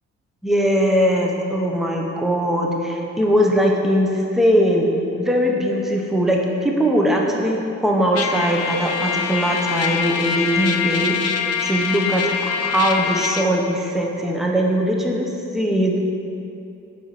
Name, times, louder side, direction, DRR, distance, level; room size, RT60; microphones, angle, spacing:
voice 1, 0.4-4.9 5.2-11.2 11.6-15.9, equal, ahead, 0 dB, 0.6 m, -20 dB
Trumpet, 8.2-13.5, left 6 dB, 55° left, 0.4 m, -24 dB
5.0 x 4.4 x 4.2 m, 2.7 s
cardioid pair, 90°, 30 cm